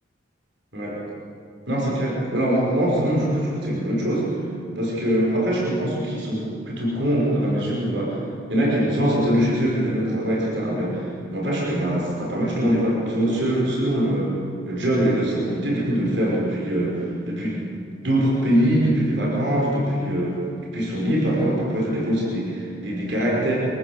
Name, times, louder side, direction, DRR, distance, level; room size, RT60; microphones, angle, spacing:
voice 1, 1.7-4.4 4.8-8.2 8.5-14.4 14.7-17.7 18.0-20.4 20.7-23.5, equal, 60° right, -4 dB, 5.3 m, -23 dB
24.0 x 14.0 x 7.9 m, 2.5 s
head